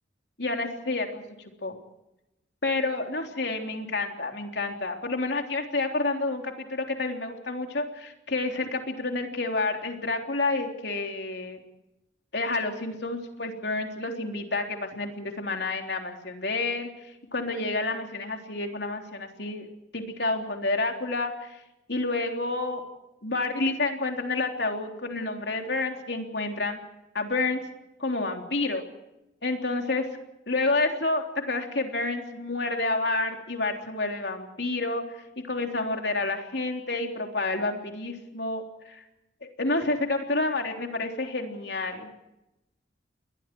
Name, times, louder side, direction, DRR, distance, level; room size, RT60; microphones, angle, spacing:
voice 1, 0.4-1.2 1.6-1.8 2.6-11.6 12.3-16.9 17.3-19.7 19.9-21.6 21.9-22.8 23.2-26.8 27.1-27.6 28.0-28.8 29.4-30.1 30.5-35.0 35.5-39.0 39.4-42.1, left 2 dB, 65° left, 3 dB, 3.5 m, -29 dB
30.0 x 22.0 x 4.6 m, 0.90 s
head